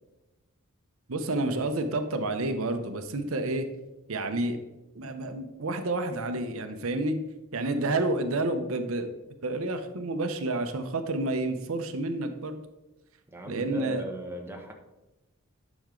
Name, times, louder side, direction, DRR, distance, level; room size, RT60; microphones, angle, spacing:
voice 1, 1.1-3.7 4.1-4.6 4.9-7.2 7.5-9.1 9.4-12.6 13.5-14.0, right 2 dB, 75° right, 7 dB, 0.8 m, -29 dB
voice 2, 13.3-14.7, right 1 dB, 10° right, 1 dB, 1.0 m, -38 dB
10.5 x 6.2 x 3.8 m, 1.0 s
head